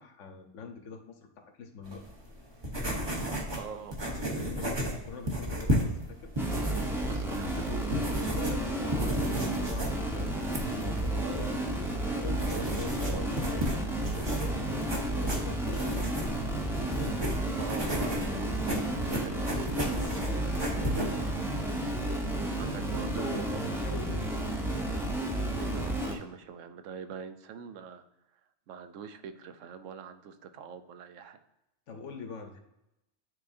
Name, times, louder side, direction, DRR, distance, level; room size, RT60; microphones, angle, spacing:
voice 1, 0.0-2.0 4.4-6.3 8.3-11.5 12.0-16.3 19.9-21.0 22.9-24.6 31.9-32.6, left 5 dB, 80° left, 5 dB, 1.2 m, -44 dB
sound 1, 1.8-21.1, equal, 25° right, 0.9 m, -34 dB
voice 2, 3.5-3.9 7.1-8.0 11.2-13.3 17.6-19.5 22.6-23.6 25.6-28.0 28.7-31.4, right 6 dB, 85° right, 9 dB, 1.0 m, -44 dB
sound 2, 6.4-26.2, right 1 dB, 5° right, 0.6 m, -32 dB
9.4 x 3.8 x 2.6 m, 0.90 s
omnidirectional pair, 1.3 m